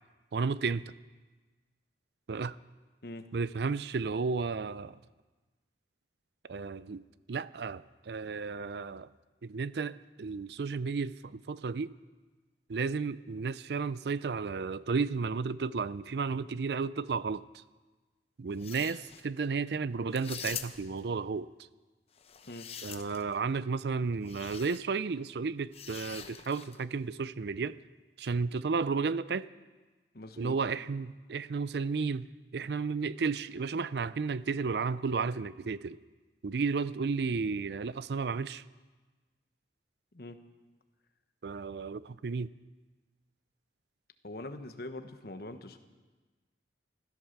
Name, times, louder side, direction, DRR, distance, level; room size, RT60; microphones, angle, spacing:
voice 1, 0.3-0.9 2.3-2.6 3.3-5.0 6.5-9.1 9.4-11.9 12.7-17.6 18.4-21.5 22.8-27.8 28.2-29.5 30.4-32.3 32.5-36.0 36.4-38.6 41.4-42.5, right 4 dB, 65° right, 0.5 m, -33 dB
sound 1, 18.5-19.2 20.1-21.0 22.2-23.3 24.2-24.8 25.7-26.8, left 8 dB, 35° left, 0.8 m, -44 dB
voice 2, 30.1-30.6 40.1-40.4 44.2-45.8, left 2 dB, 55° left, 1.2 m, -43 dB
15.5 x 13.5 x 6.7 m
head